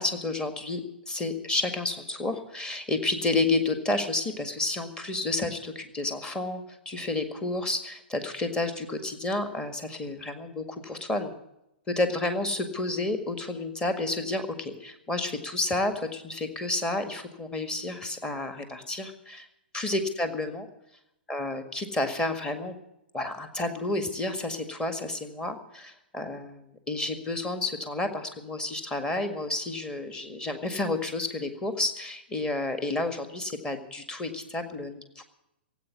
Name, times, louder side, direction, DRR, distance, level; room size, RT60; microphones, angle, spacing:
voice 1, 0.0-11.3 11.9-19.5 19.7-20.7 21.3-22.8 23.1-35.2, left 2 dB, 15° left, 7 dB, 1.8 m, -30 dB
17.0 x 8.5 x 9.6 m, 0.84 s
hypercardioid pair, 130°, 6 cm